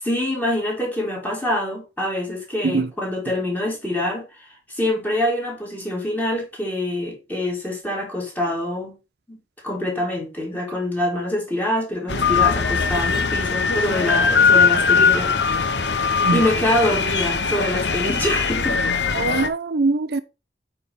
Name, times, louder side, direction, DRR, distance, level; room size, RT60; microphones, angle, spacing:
voice 1, 0.0-9.0 9.3-9.4 9.6-15.9 16.3-18.8, left 1 dB, 10° left, 3.2 m, -25 dB
sound 1, 12.1-19.5, left 5 dB, 80° left, 1.0 m, -20 dB
voice 2, 19.1-20.2, right 3 dB, 65° right, 0.5 m, -22 dB
8.5 x 4.7 x 5.3 m
head